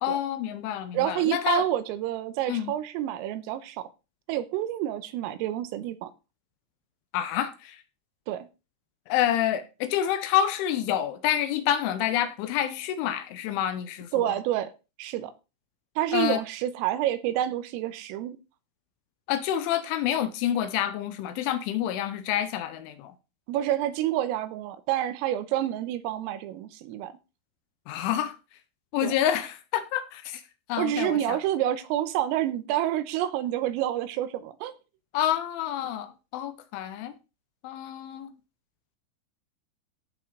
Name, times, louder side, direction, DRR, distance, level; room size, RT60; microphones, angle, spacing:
voice 1, 0.0-1.7 2.5-2.7 7.1-7.8 9.1-14.3 16.1-16.4 19.3-23.1 27.9-28.4 28.9-30.4 30.7-31.4 35.1-37.1 37.6-38.3, left 11 dB, 80° left, 3.0 m, -28 dB
voice 2, 0.9-3.9 4.3-6.1 8.3-8.5 14.1-14.7 15.0-15.3 16.0-18.4 23.5-27.1 29.0-29.1 30.8-34.8, right 12 dB, 85° right, 3.6 m, -28 dB
16.0 x 6.1 x 3.9 m
omnidirectional pair, 5.9 m